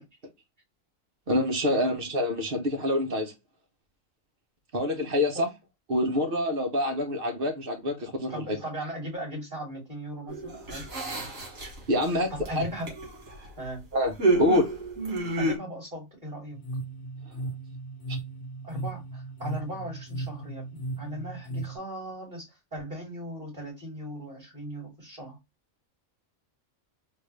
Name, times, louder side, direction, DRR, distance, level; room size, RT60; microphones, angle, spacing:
voice 1, 1.3-3.3 4.7-5.5 5.9-8.6 11.9-12.7 13.9-14.7 18.1-18.2, left 1 dB, 45° right, 1.0 m, -26 dB
voice 2, 8.3-10.9 12.3-12.9 13.6-13.8 15.4-16.6 18.6-25.4, right 1 dB, 30° right, 2.5 m, -38 dB
sound 1, 10.3-12.0 12.4-13.5 14.2-15.6, right 2 dB, 70° right, 2.1 m, -28 dB
sound 2, 16.5-21.8, right 2 dB, 60° left, 1.1 m, -36 dB
3.7 x 2.5 x 3.0 m
omnidirectional pair, 1.4 m